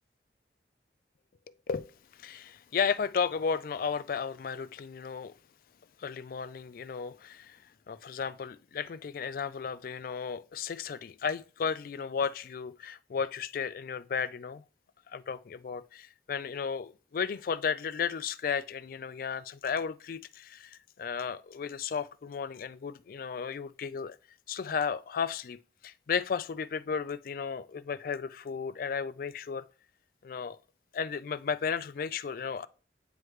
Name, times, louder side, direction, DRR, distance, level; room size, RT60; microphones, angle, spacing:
voice 1, 1.7-5.3 6.0-7.6 7.9-14.6 15.1-24.2 24.5-25.6 25.8-29.6 30.2-30.6 30.9-32.7, left 6 dB, 55° left, 0.3 m, -34 dB
9.3 x 3.2 x 3.2 m
head